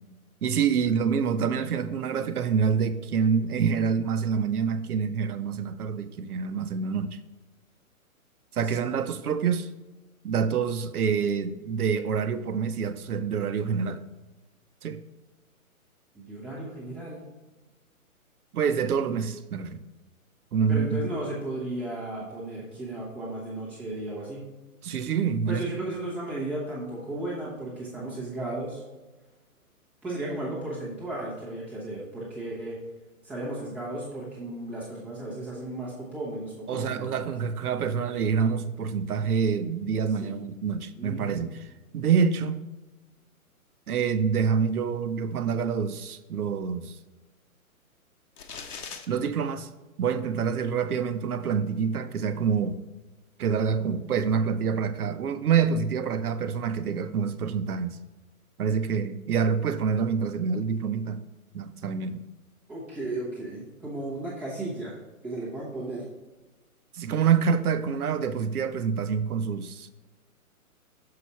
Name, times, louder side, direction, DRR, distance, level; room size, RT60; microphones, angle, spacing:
voice 1, 0.4-7.2 8.5-9.7 10.2-14.0 14.8-15.0 18.5-19.8 20.5-21.1 24.8-25.8 36.7-41.6 41.9-42.7 43.9-46.9 49.1-49.7 50.0-52.8 53.4-58.0 58.6-61.2 61.5-62.2 66.9-69.9, right 6 dB, 80° right, 0.8 m, -26 dB
voice 2, 16.1-17.2 20.7-24.4 25.5-28.8 30.0-32.8 33.2-37.2 40.2-40.4 41.0-41.4 62.7-64.9 65.2-66.0, right 1 dB, 5° right, 0.6 m, -35 dB
sound 1, 48.4-49.0, left 6 dB, 85° left, 1.1 m, -39 dB
6.8 x 4.8 x 4.0 m
hypercardioid pair, 160°, 44 cm